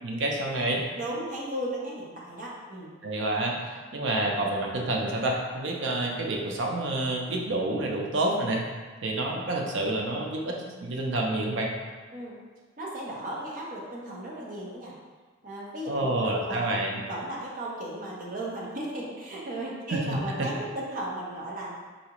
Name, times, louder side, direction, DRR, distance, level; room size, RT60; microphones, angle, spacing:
voice 1, 0.0-0.8 3.0-3.5 3.9-8.6 9.0-10.5 10.8-11.7 15.9-17.0 19.9-20.5, right 2 dB, 80° right, 0 dB, 0.6 m, -28 dB
voice 2, 1.0-2.9 12.1-12.4 12.8-14.9 15.4-16.8 17.1-21.7, right 1 dB, 45° right, -4 dB, 0.7 m, -35 dB
4.0 x 2.4 x 2.9 m, 1.4 s
head